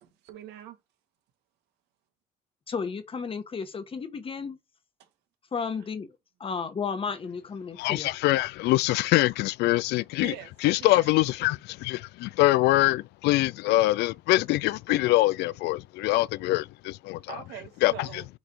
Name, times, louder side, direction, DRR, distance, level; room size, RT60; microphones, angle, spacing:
voice 1, 0.0-0.8 5.0-5.1 10.2-10.5 10.8-11.1 17.3-18.3, right 11 dB, 85° right, 1.7 m, -42 dB
voice 2, 2.7-4.6 5.5-6.1 6.4-8.1, left 5 dB, 30° left, 1.3 m, -33 dB
voice 3, 7.8-10.3 10.6-17.4 17.8-18.2, left 18 dB, 80° left, 0.4 m, -24 dB
6.3 x 3.5 x 4.5 m
cardioid pair, 110°, 17 cm